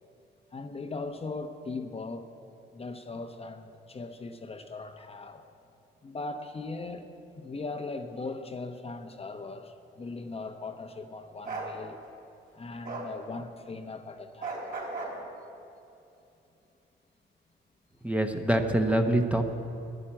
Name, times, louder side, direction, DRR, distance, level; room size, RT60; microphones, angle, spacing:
voice 1, 0.5-2.3 2.7-5.4 6.0-7.1 7.3-12.0 12.5-14.6 18.5-19.0, left 3 dB, 30° left, 5 dB, 0.9 m, -39 dB
Bark, 11.4-11.7 12.8-13.1 14.4-15.2, right 3 dB, 45° right, 3.8 m, -35 dB
voice 2, 18.0-19.4, right 1 dB, 5° right, 5 dB, 1.0 m, -25 dB
11.5 x 10.0 x 8.8 m, 2.7 s
cardioid pair, 90°, 20 cm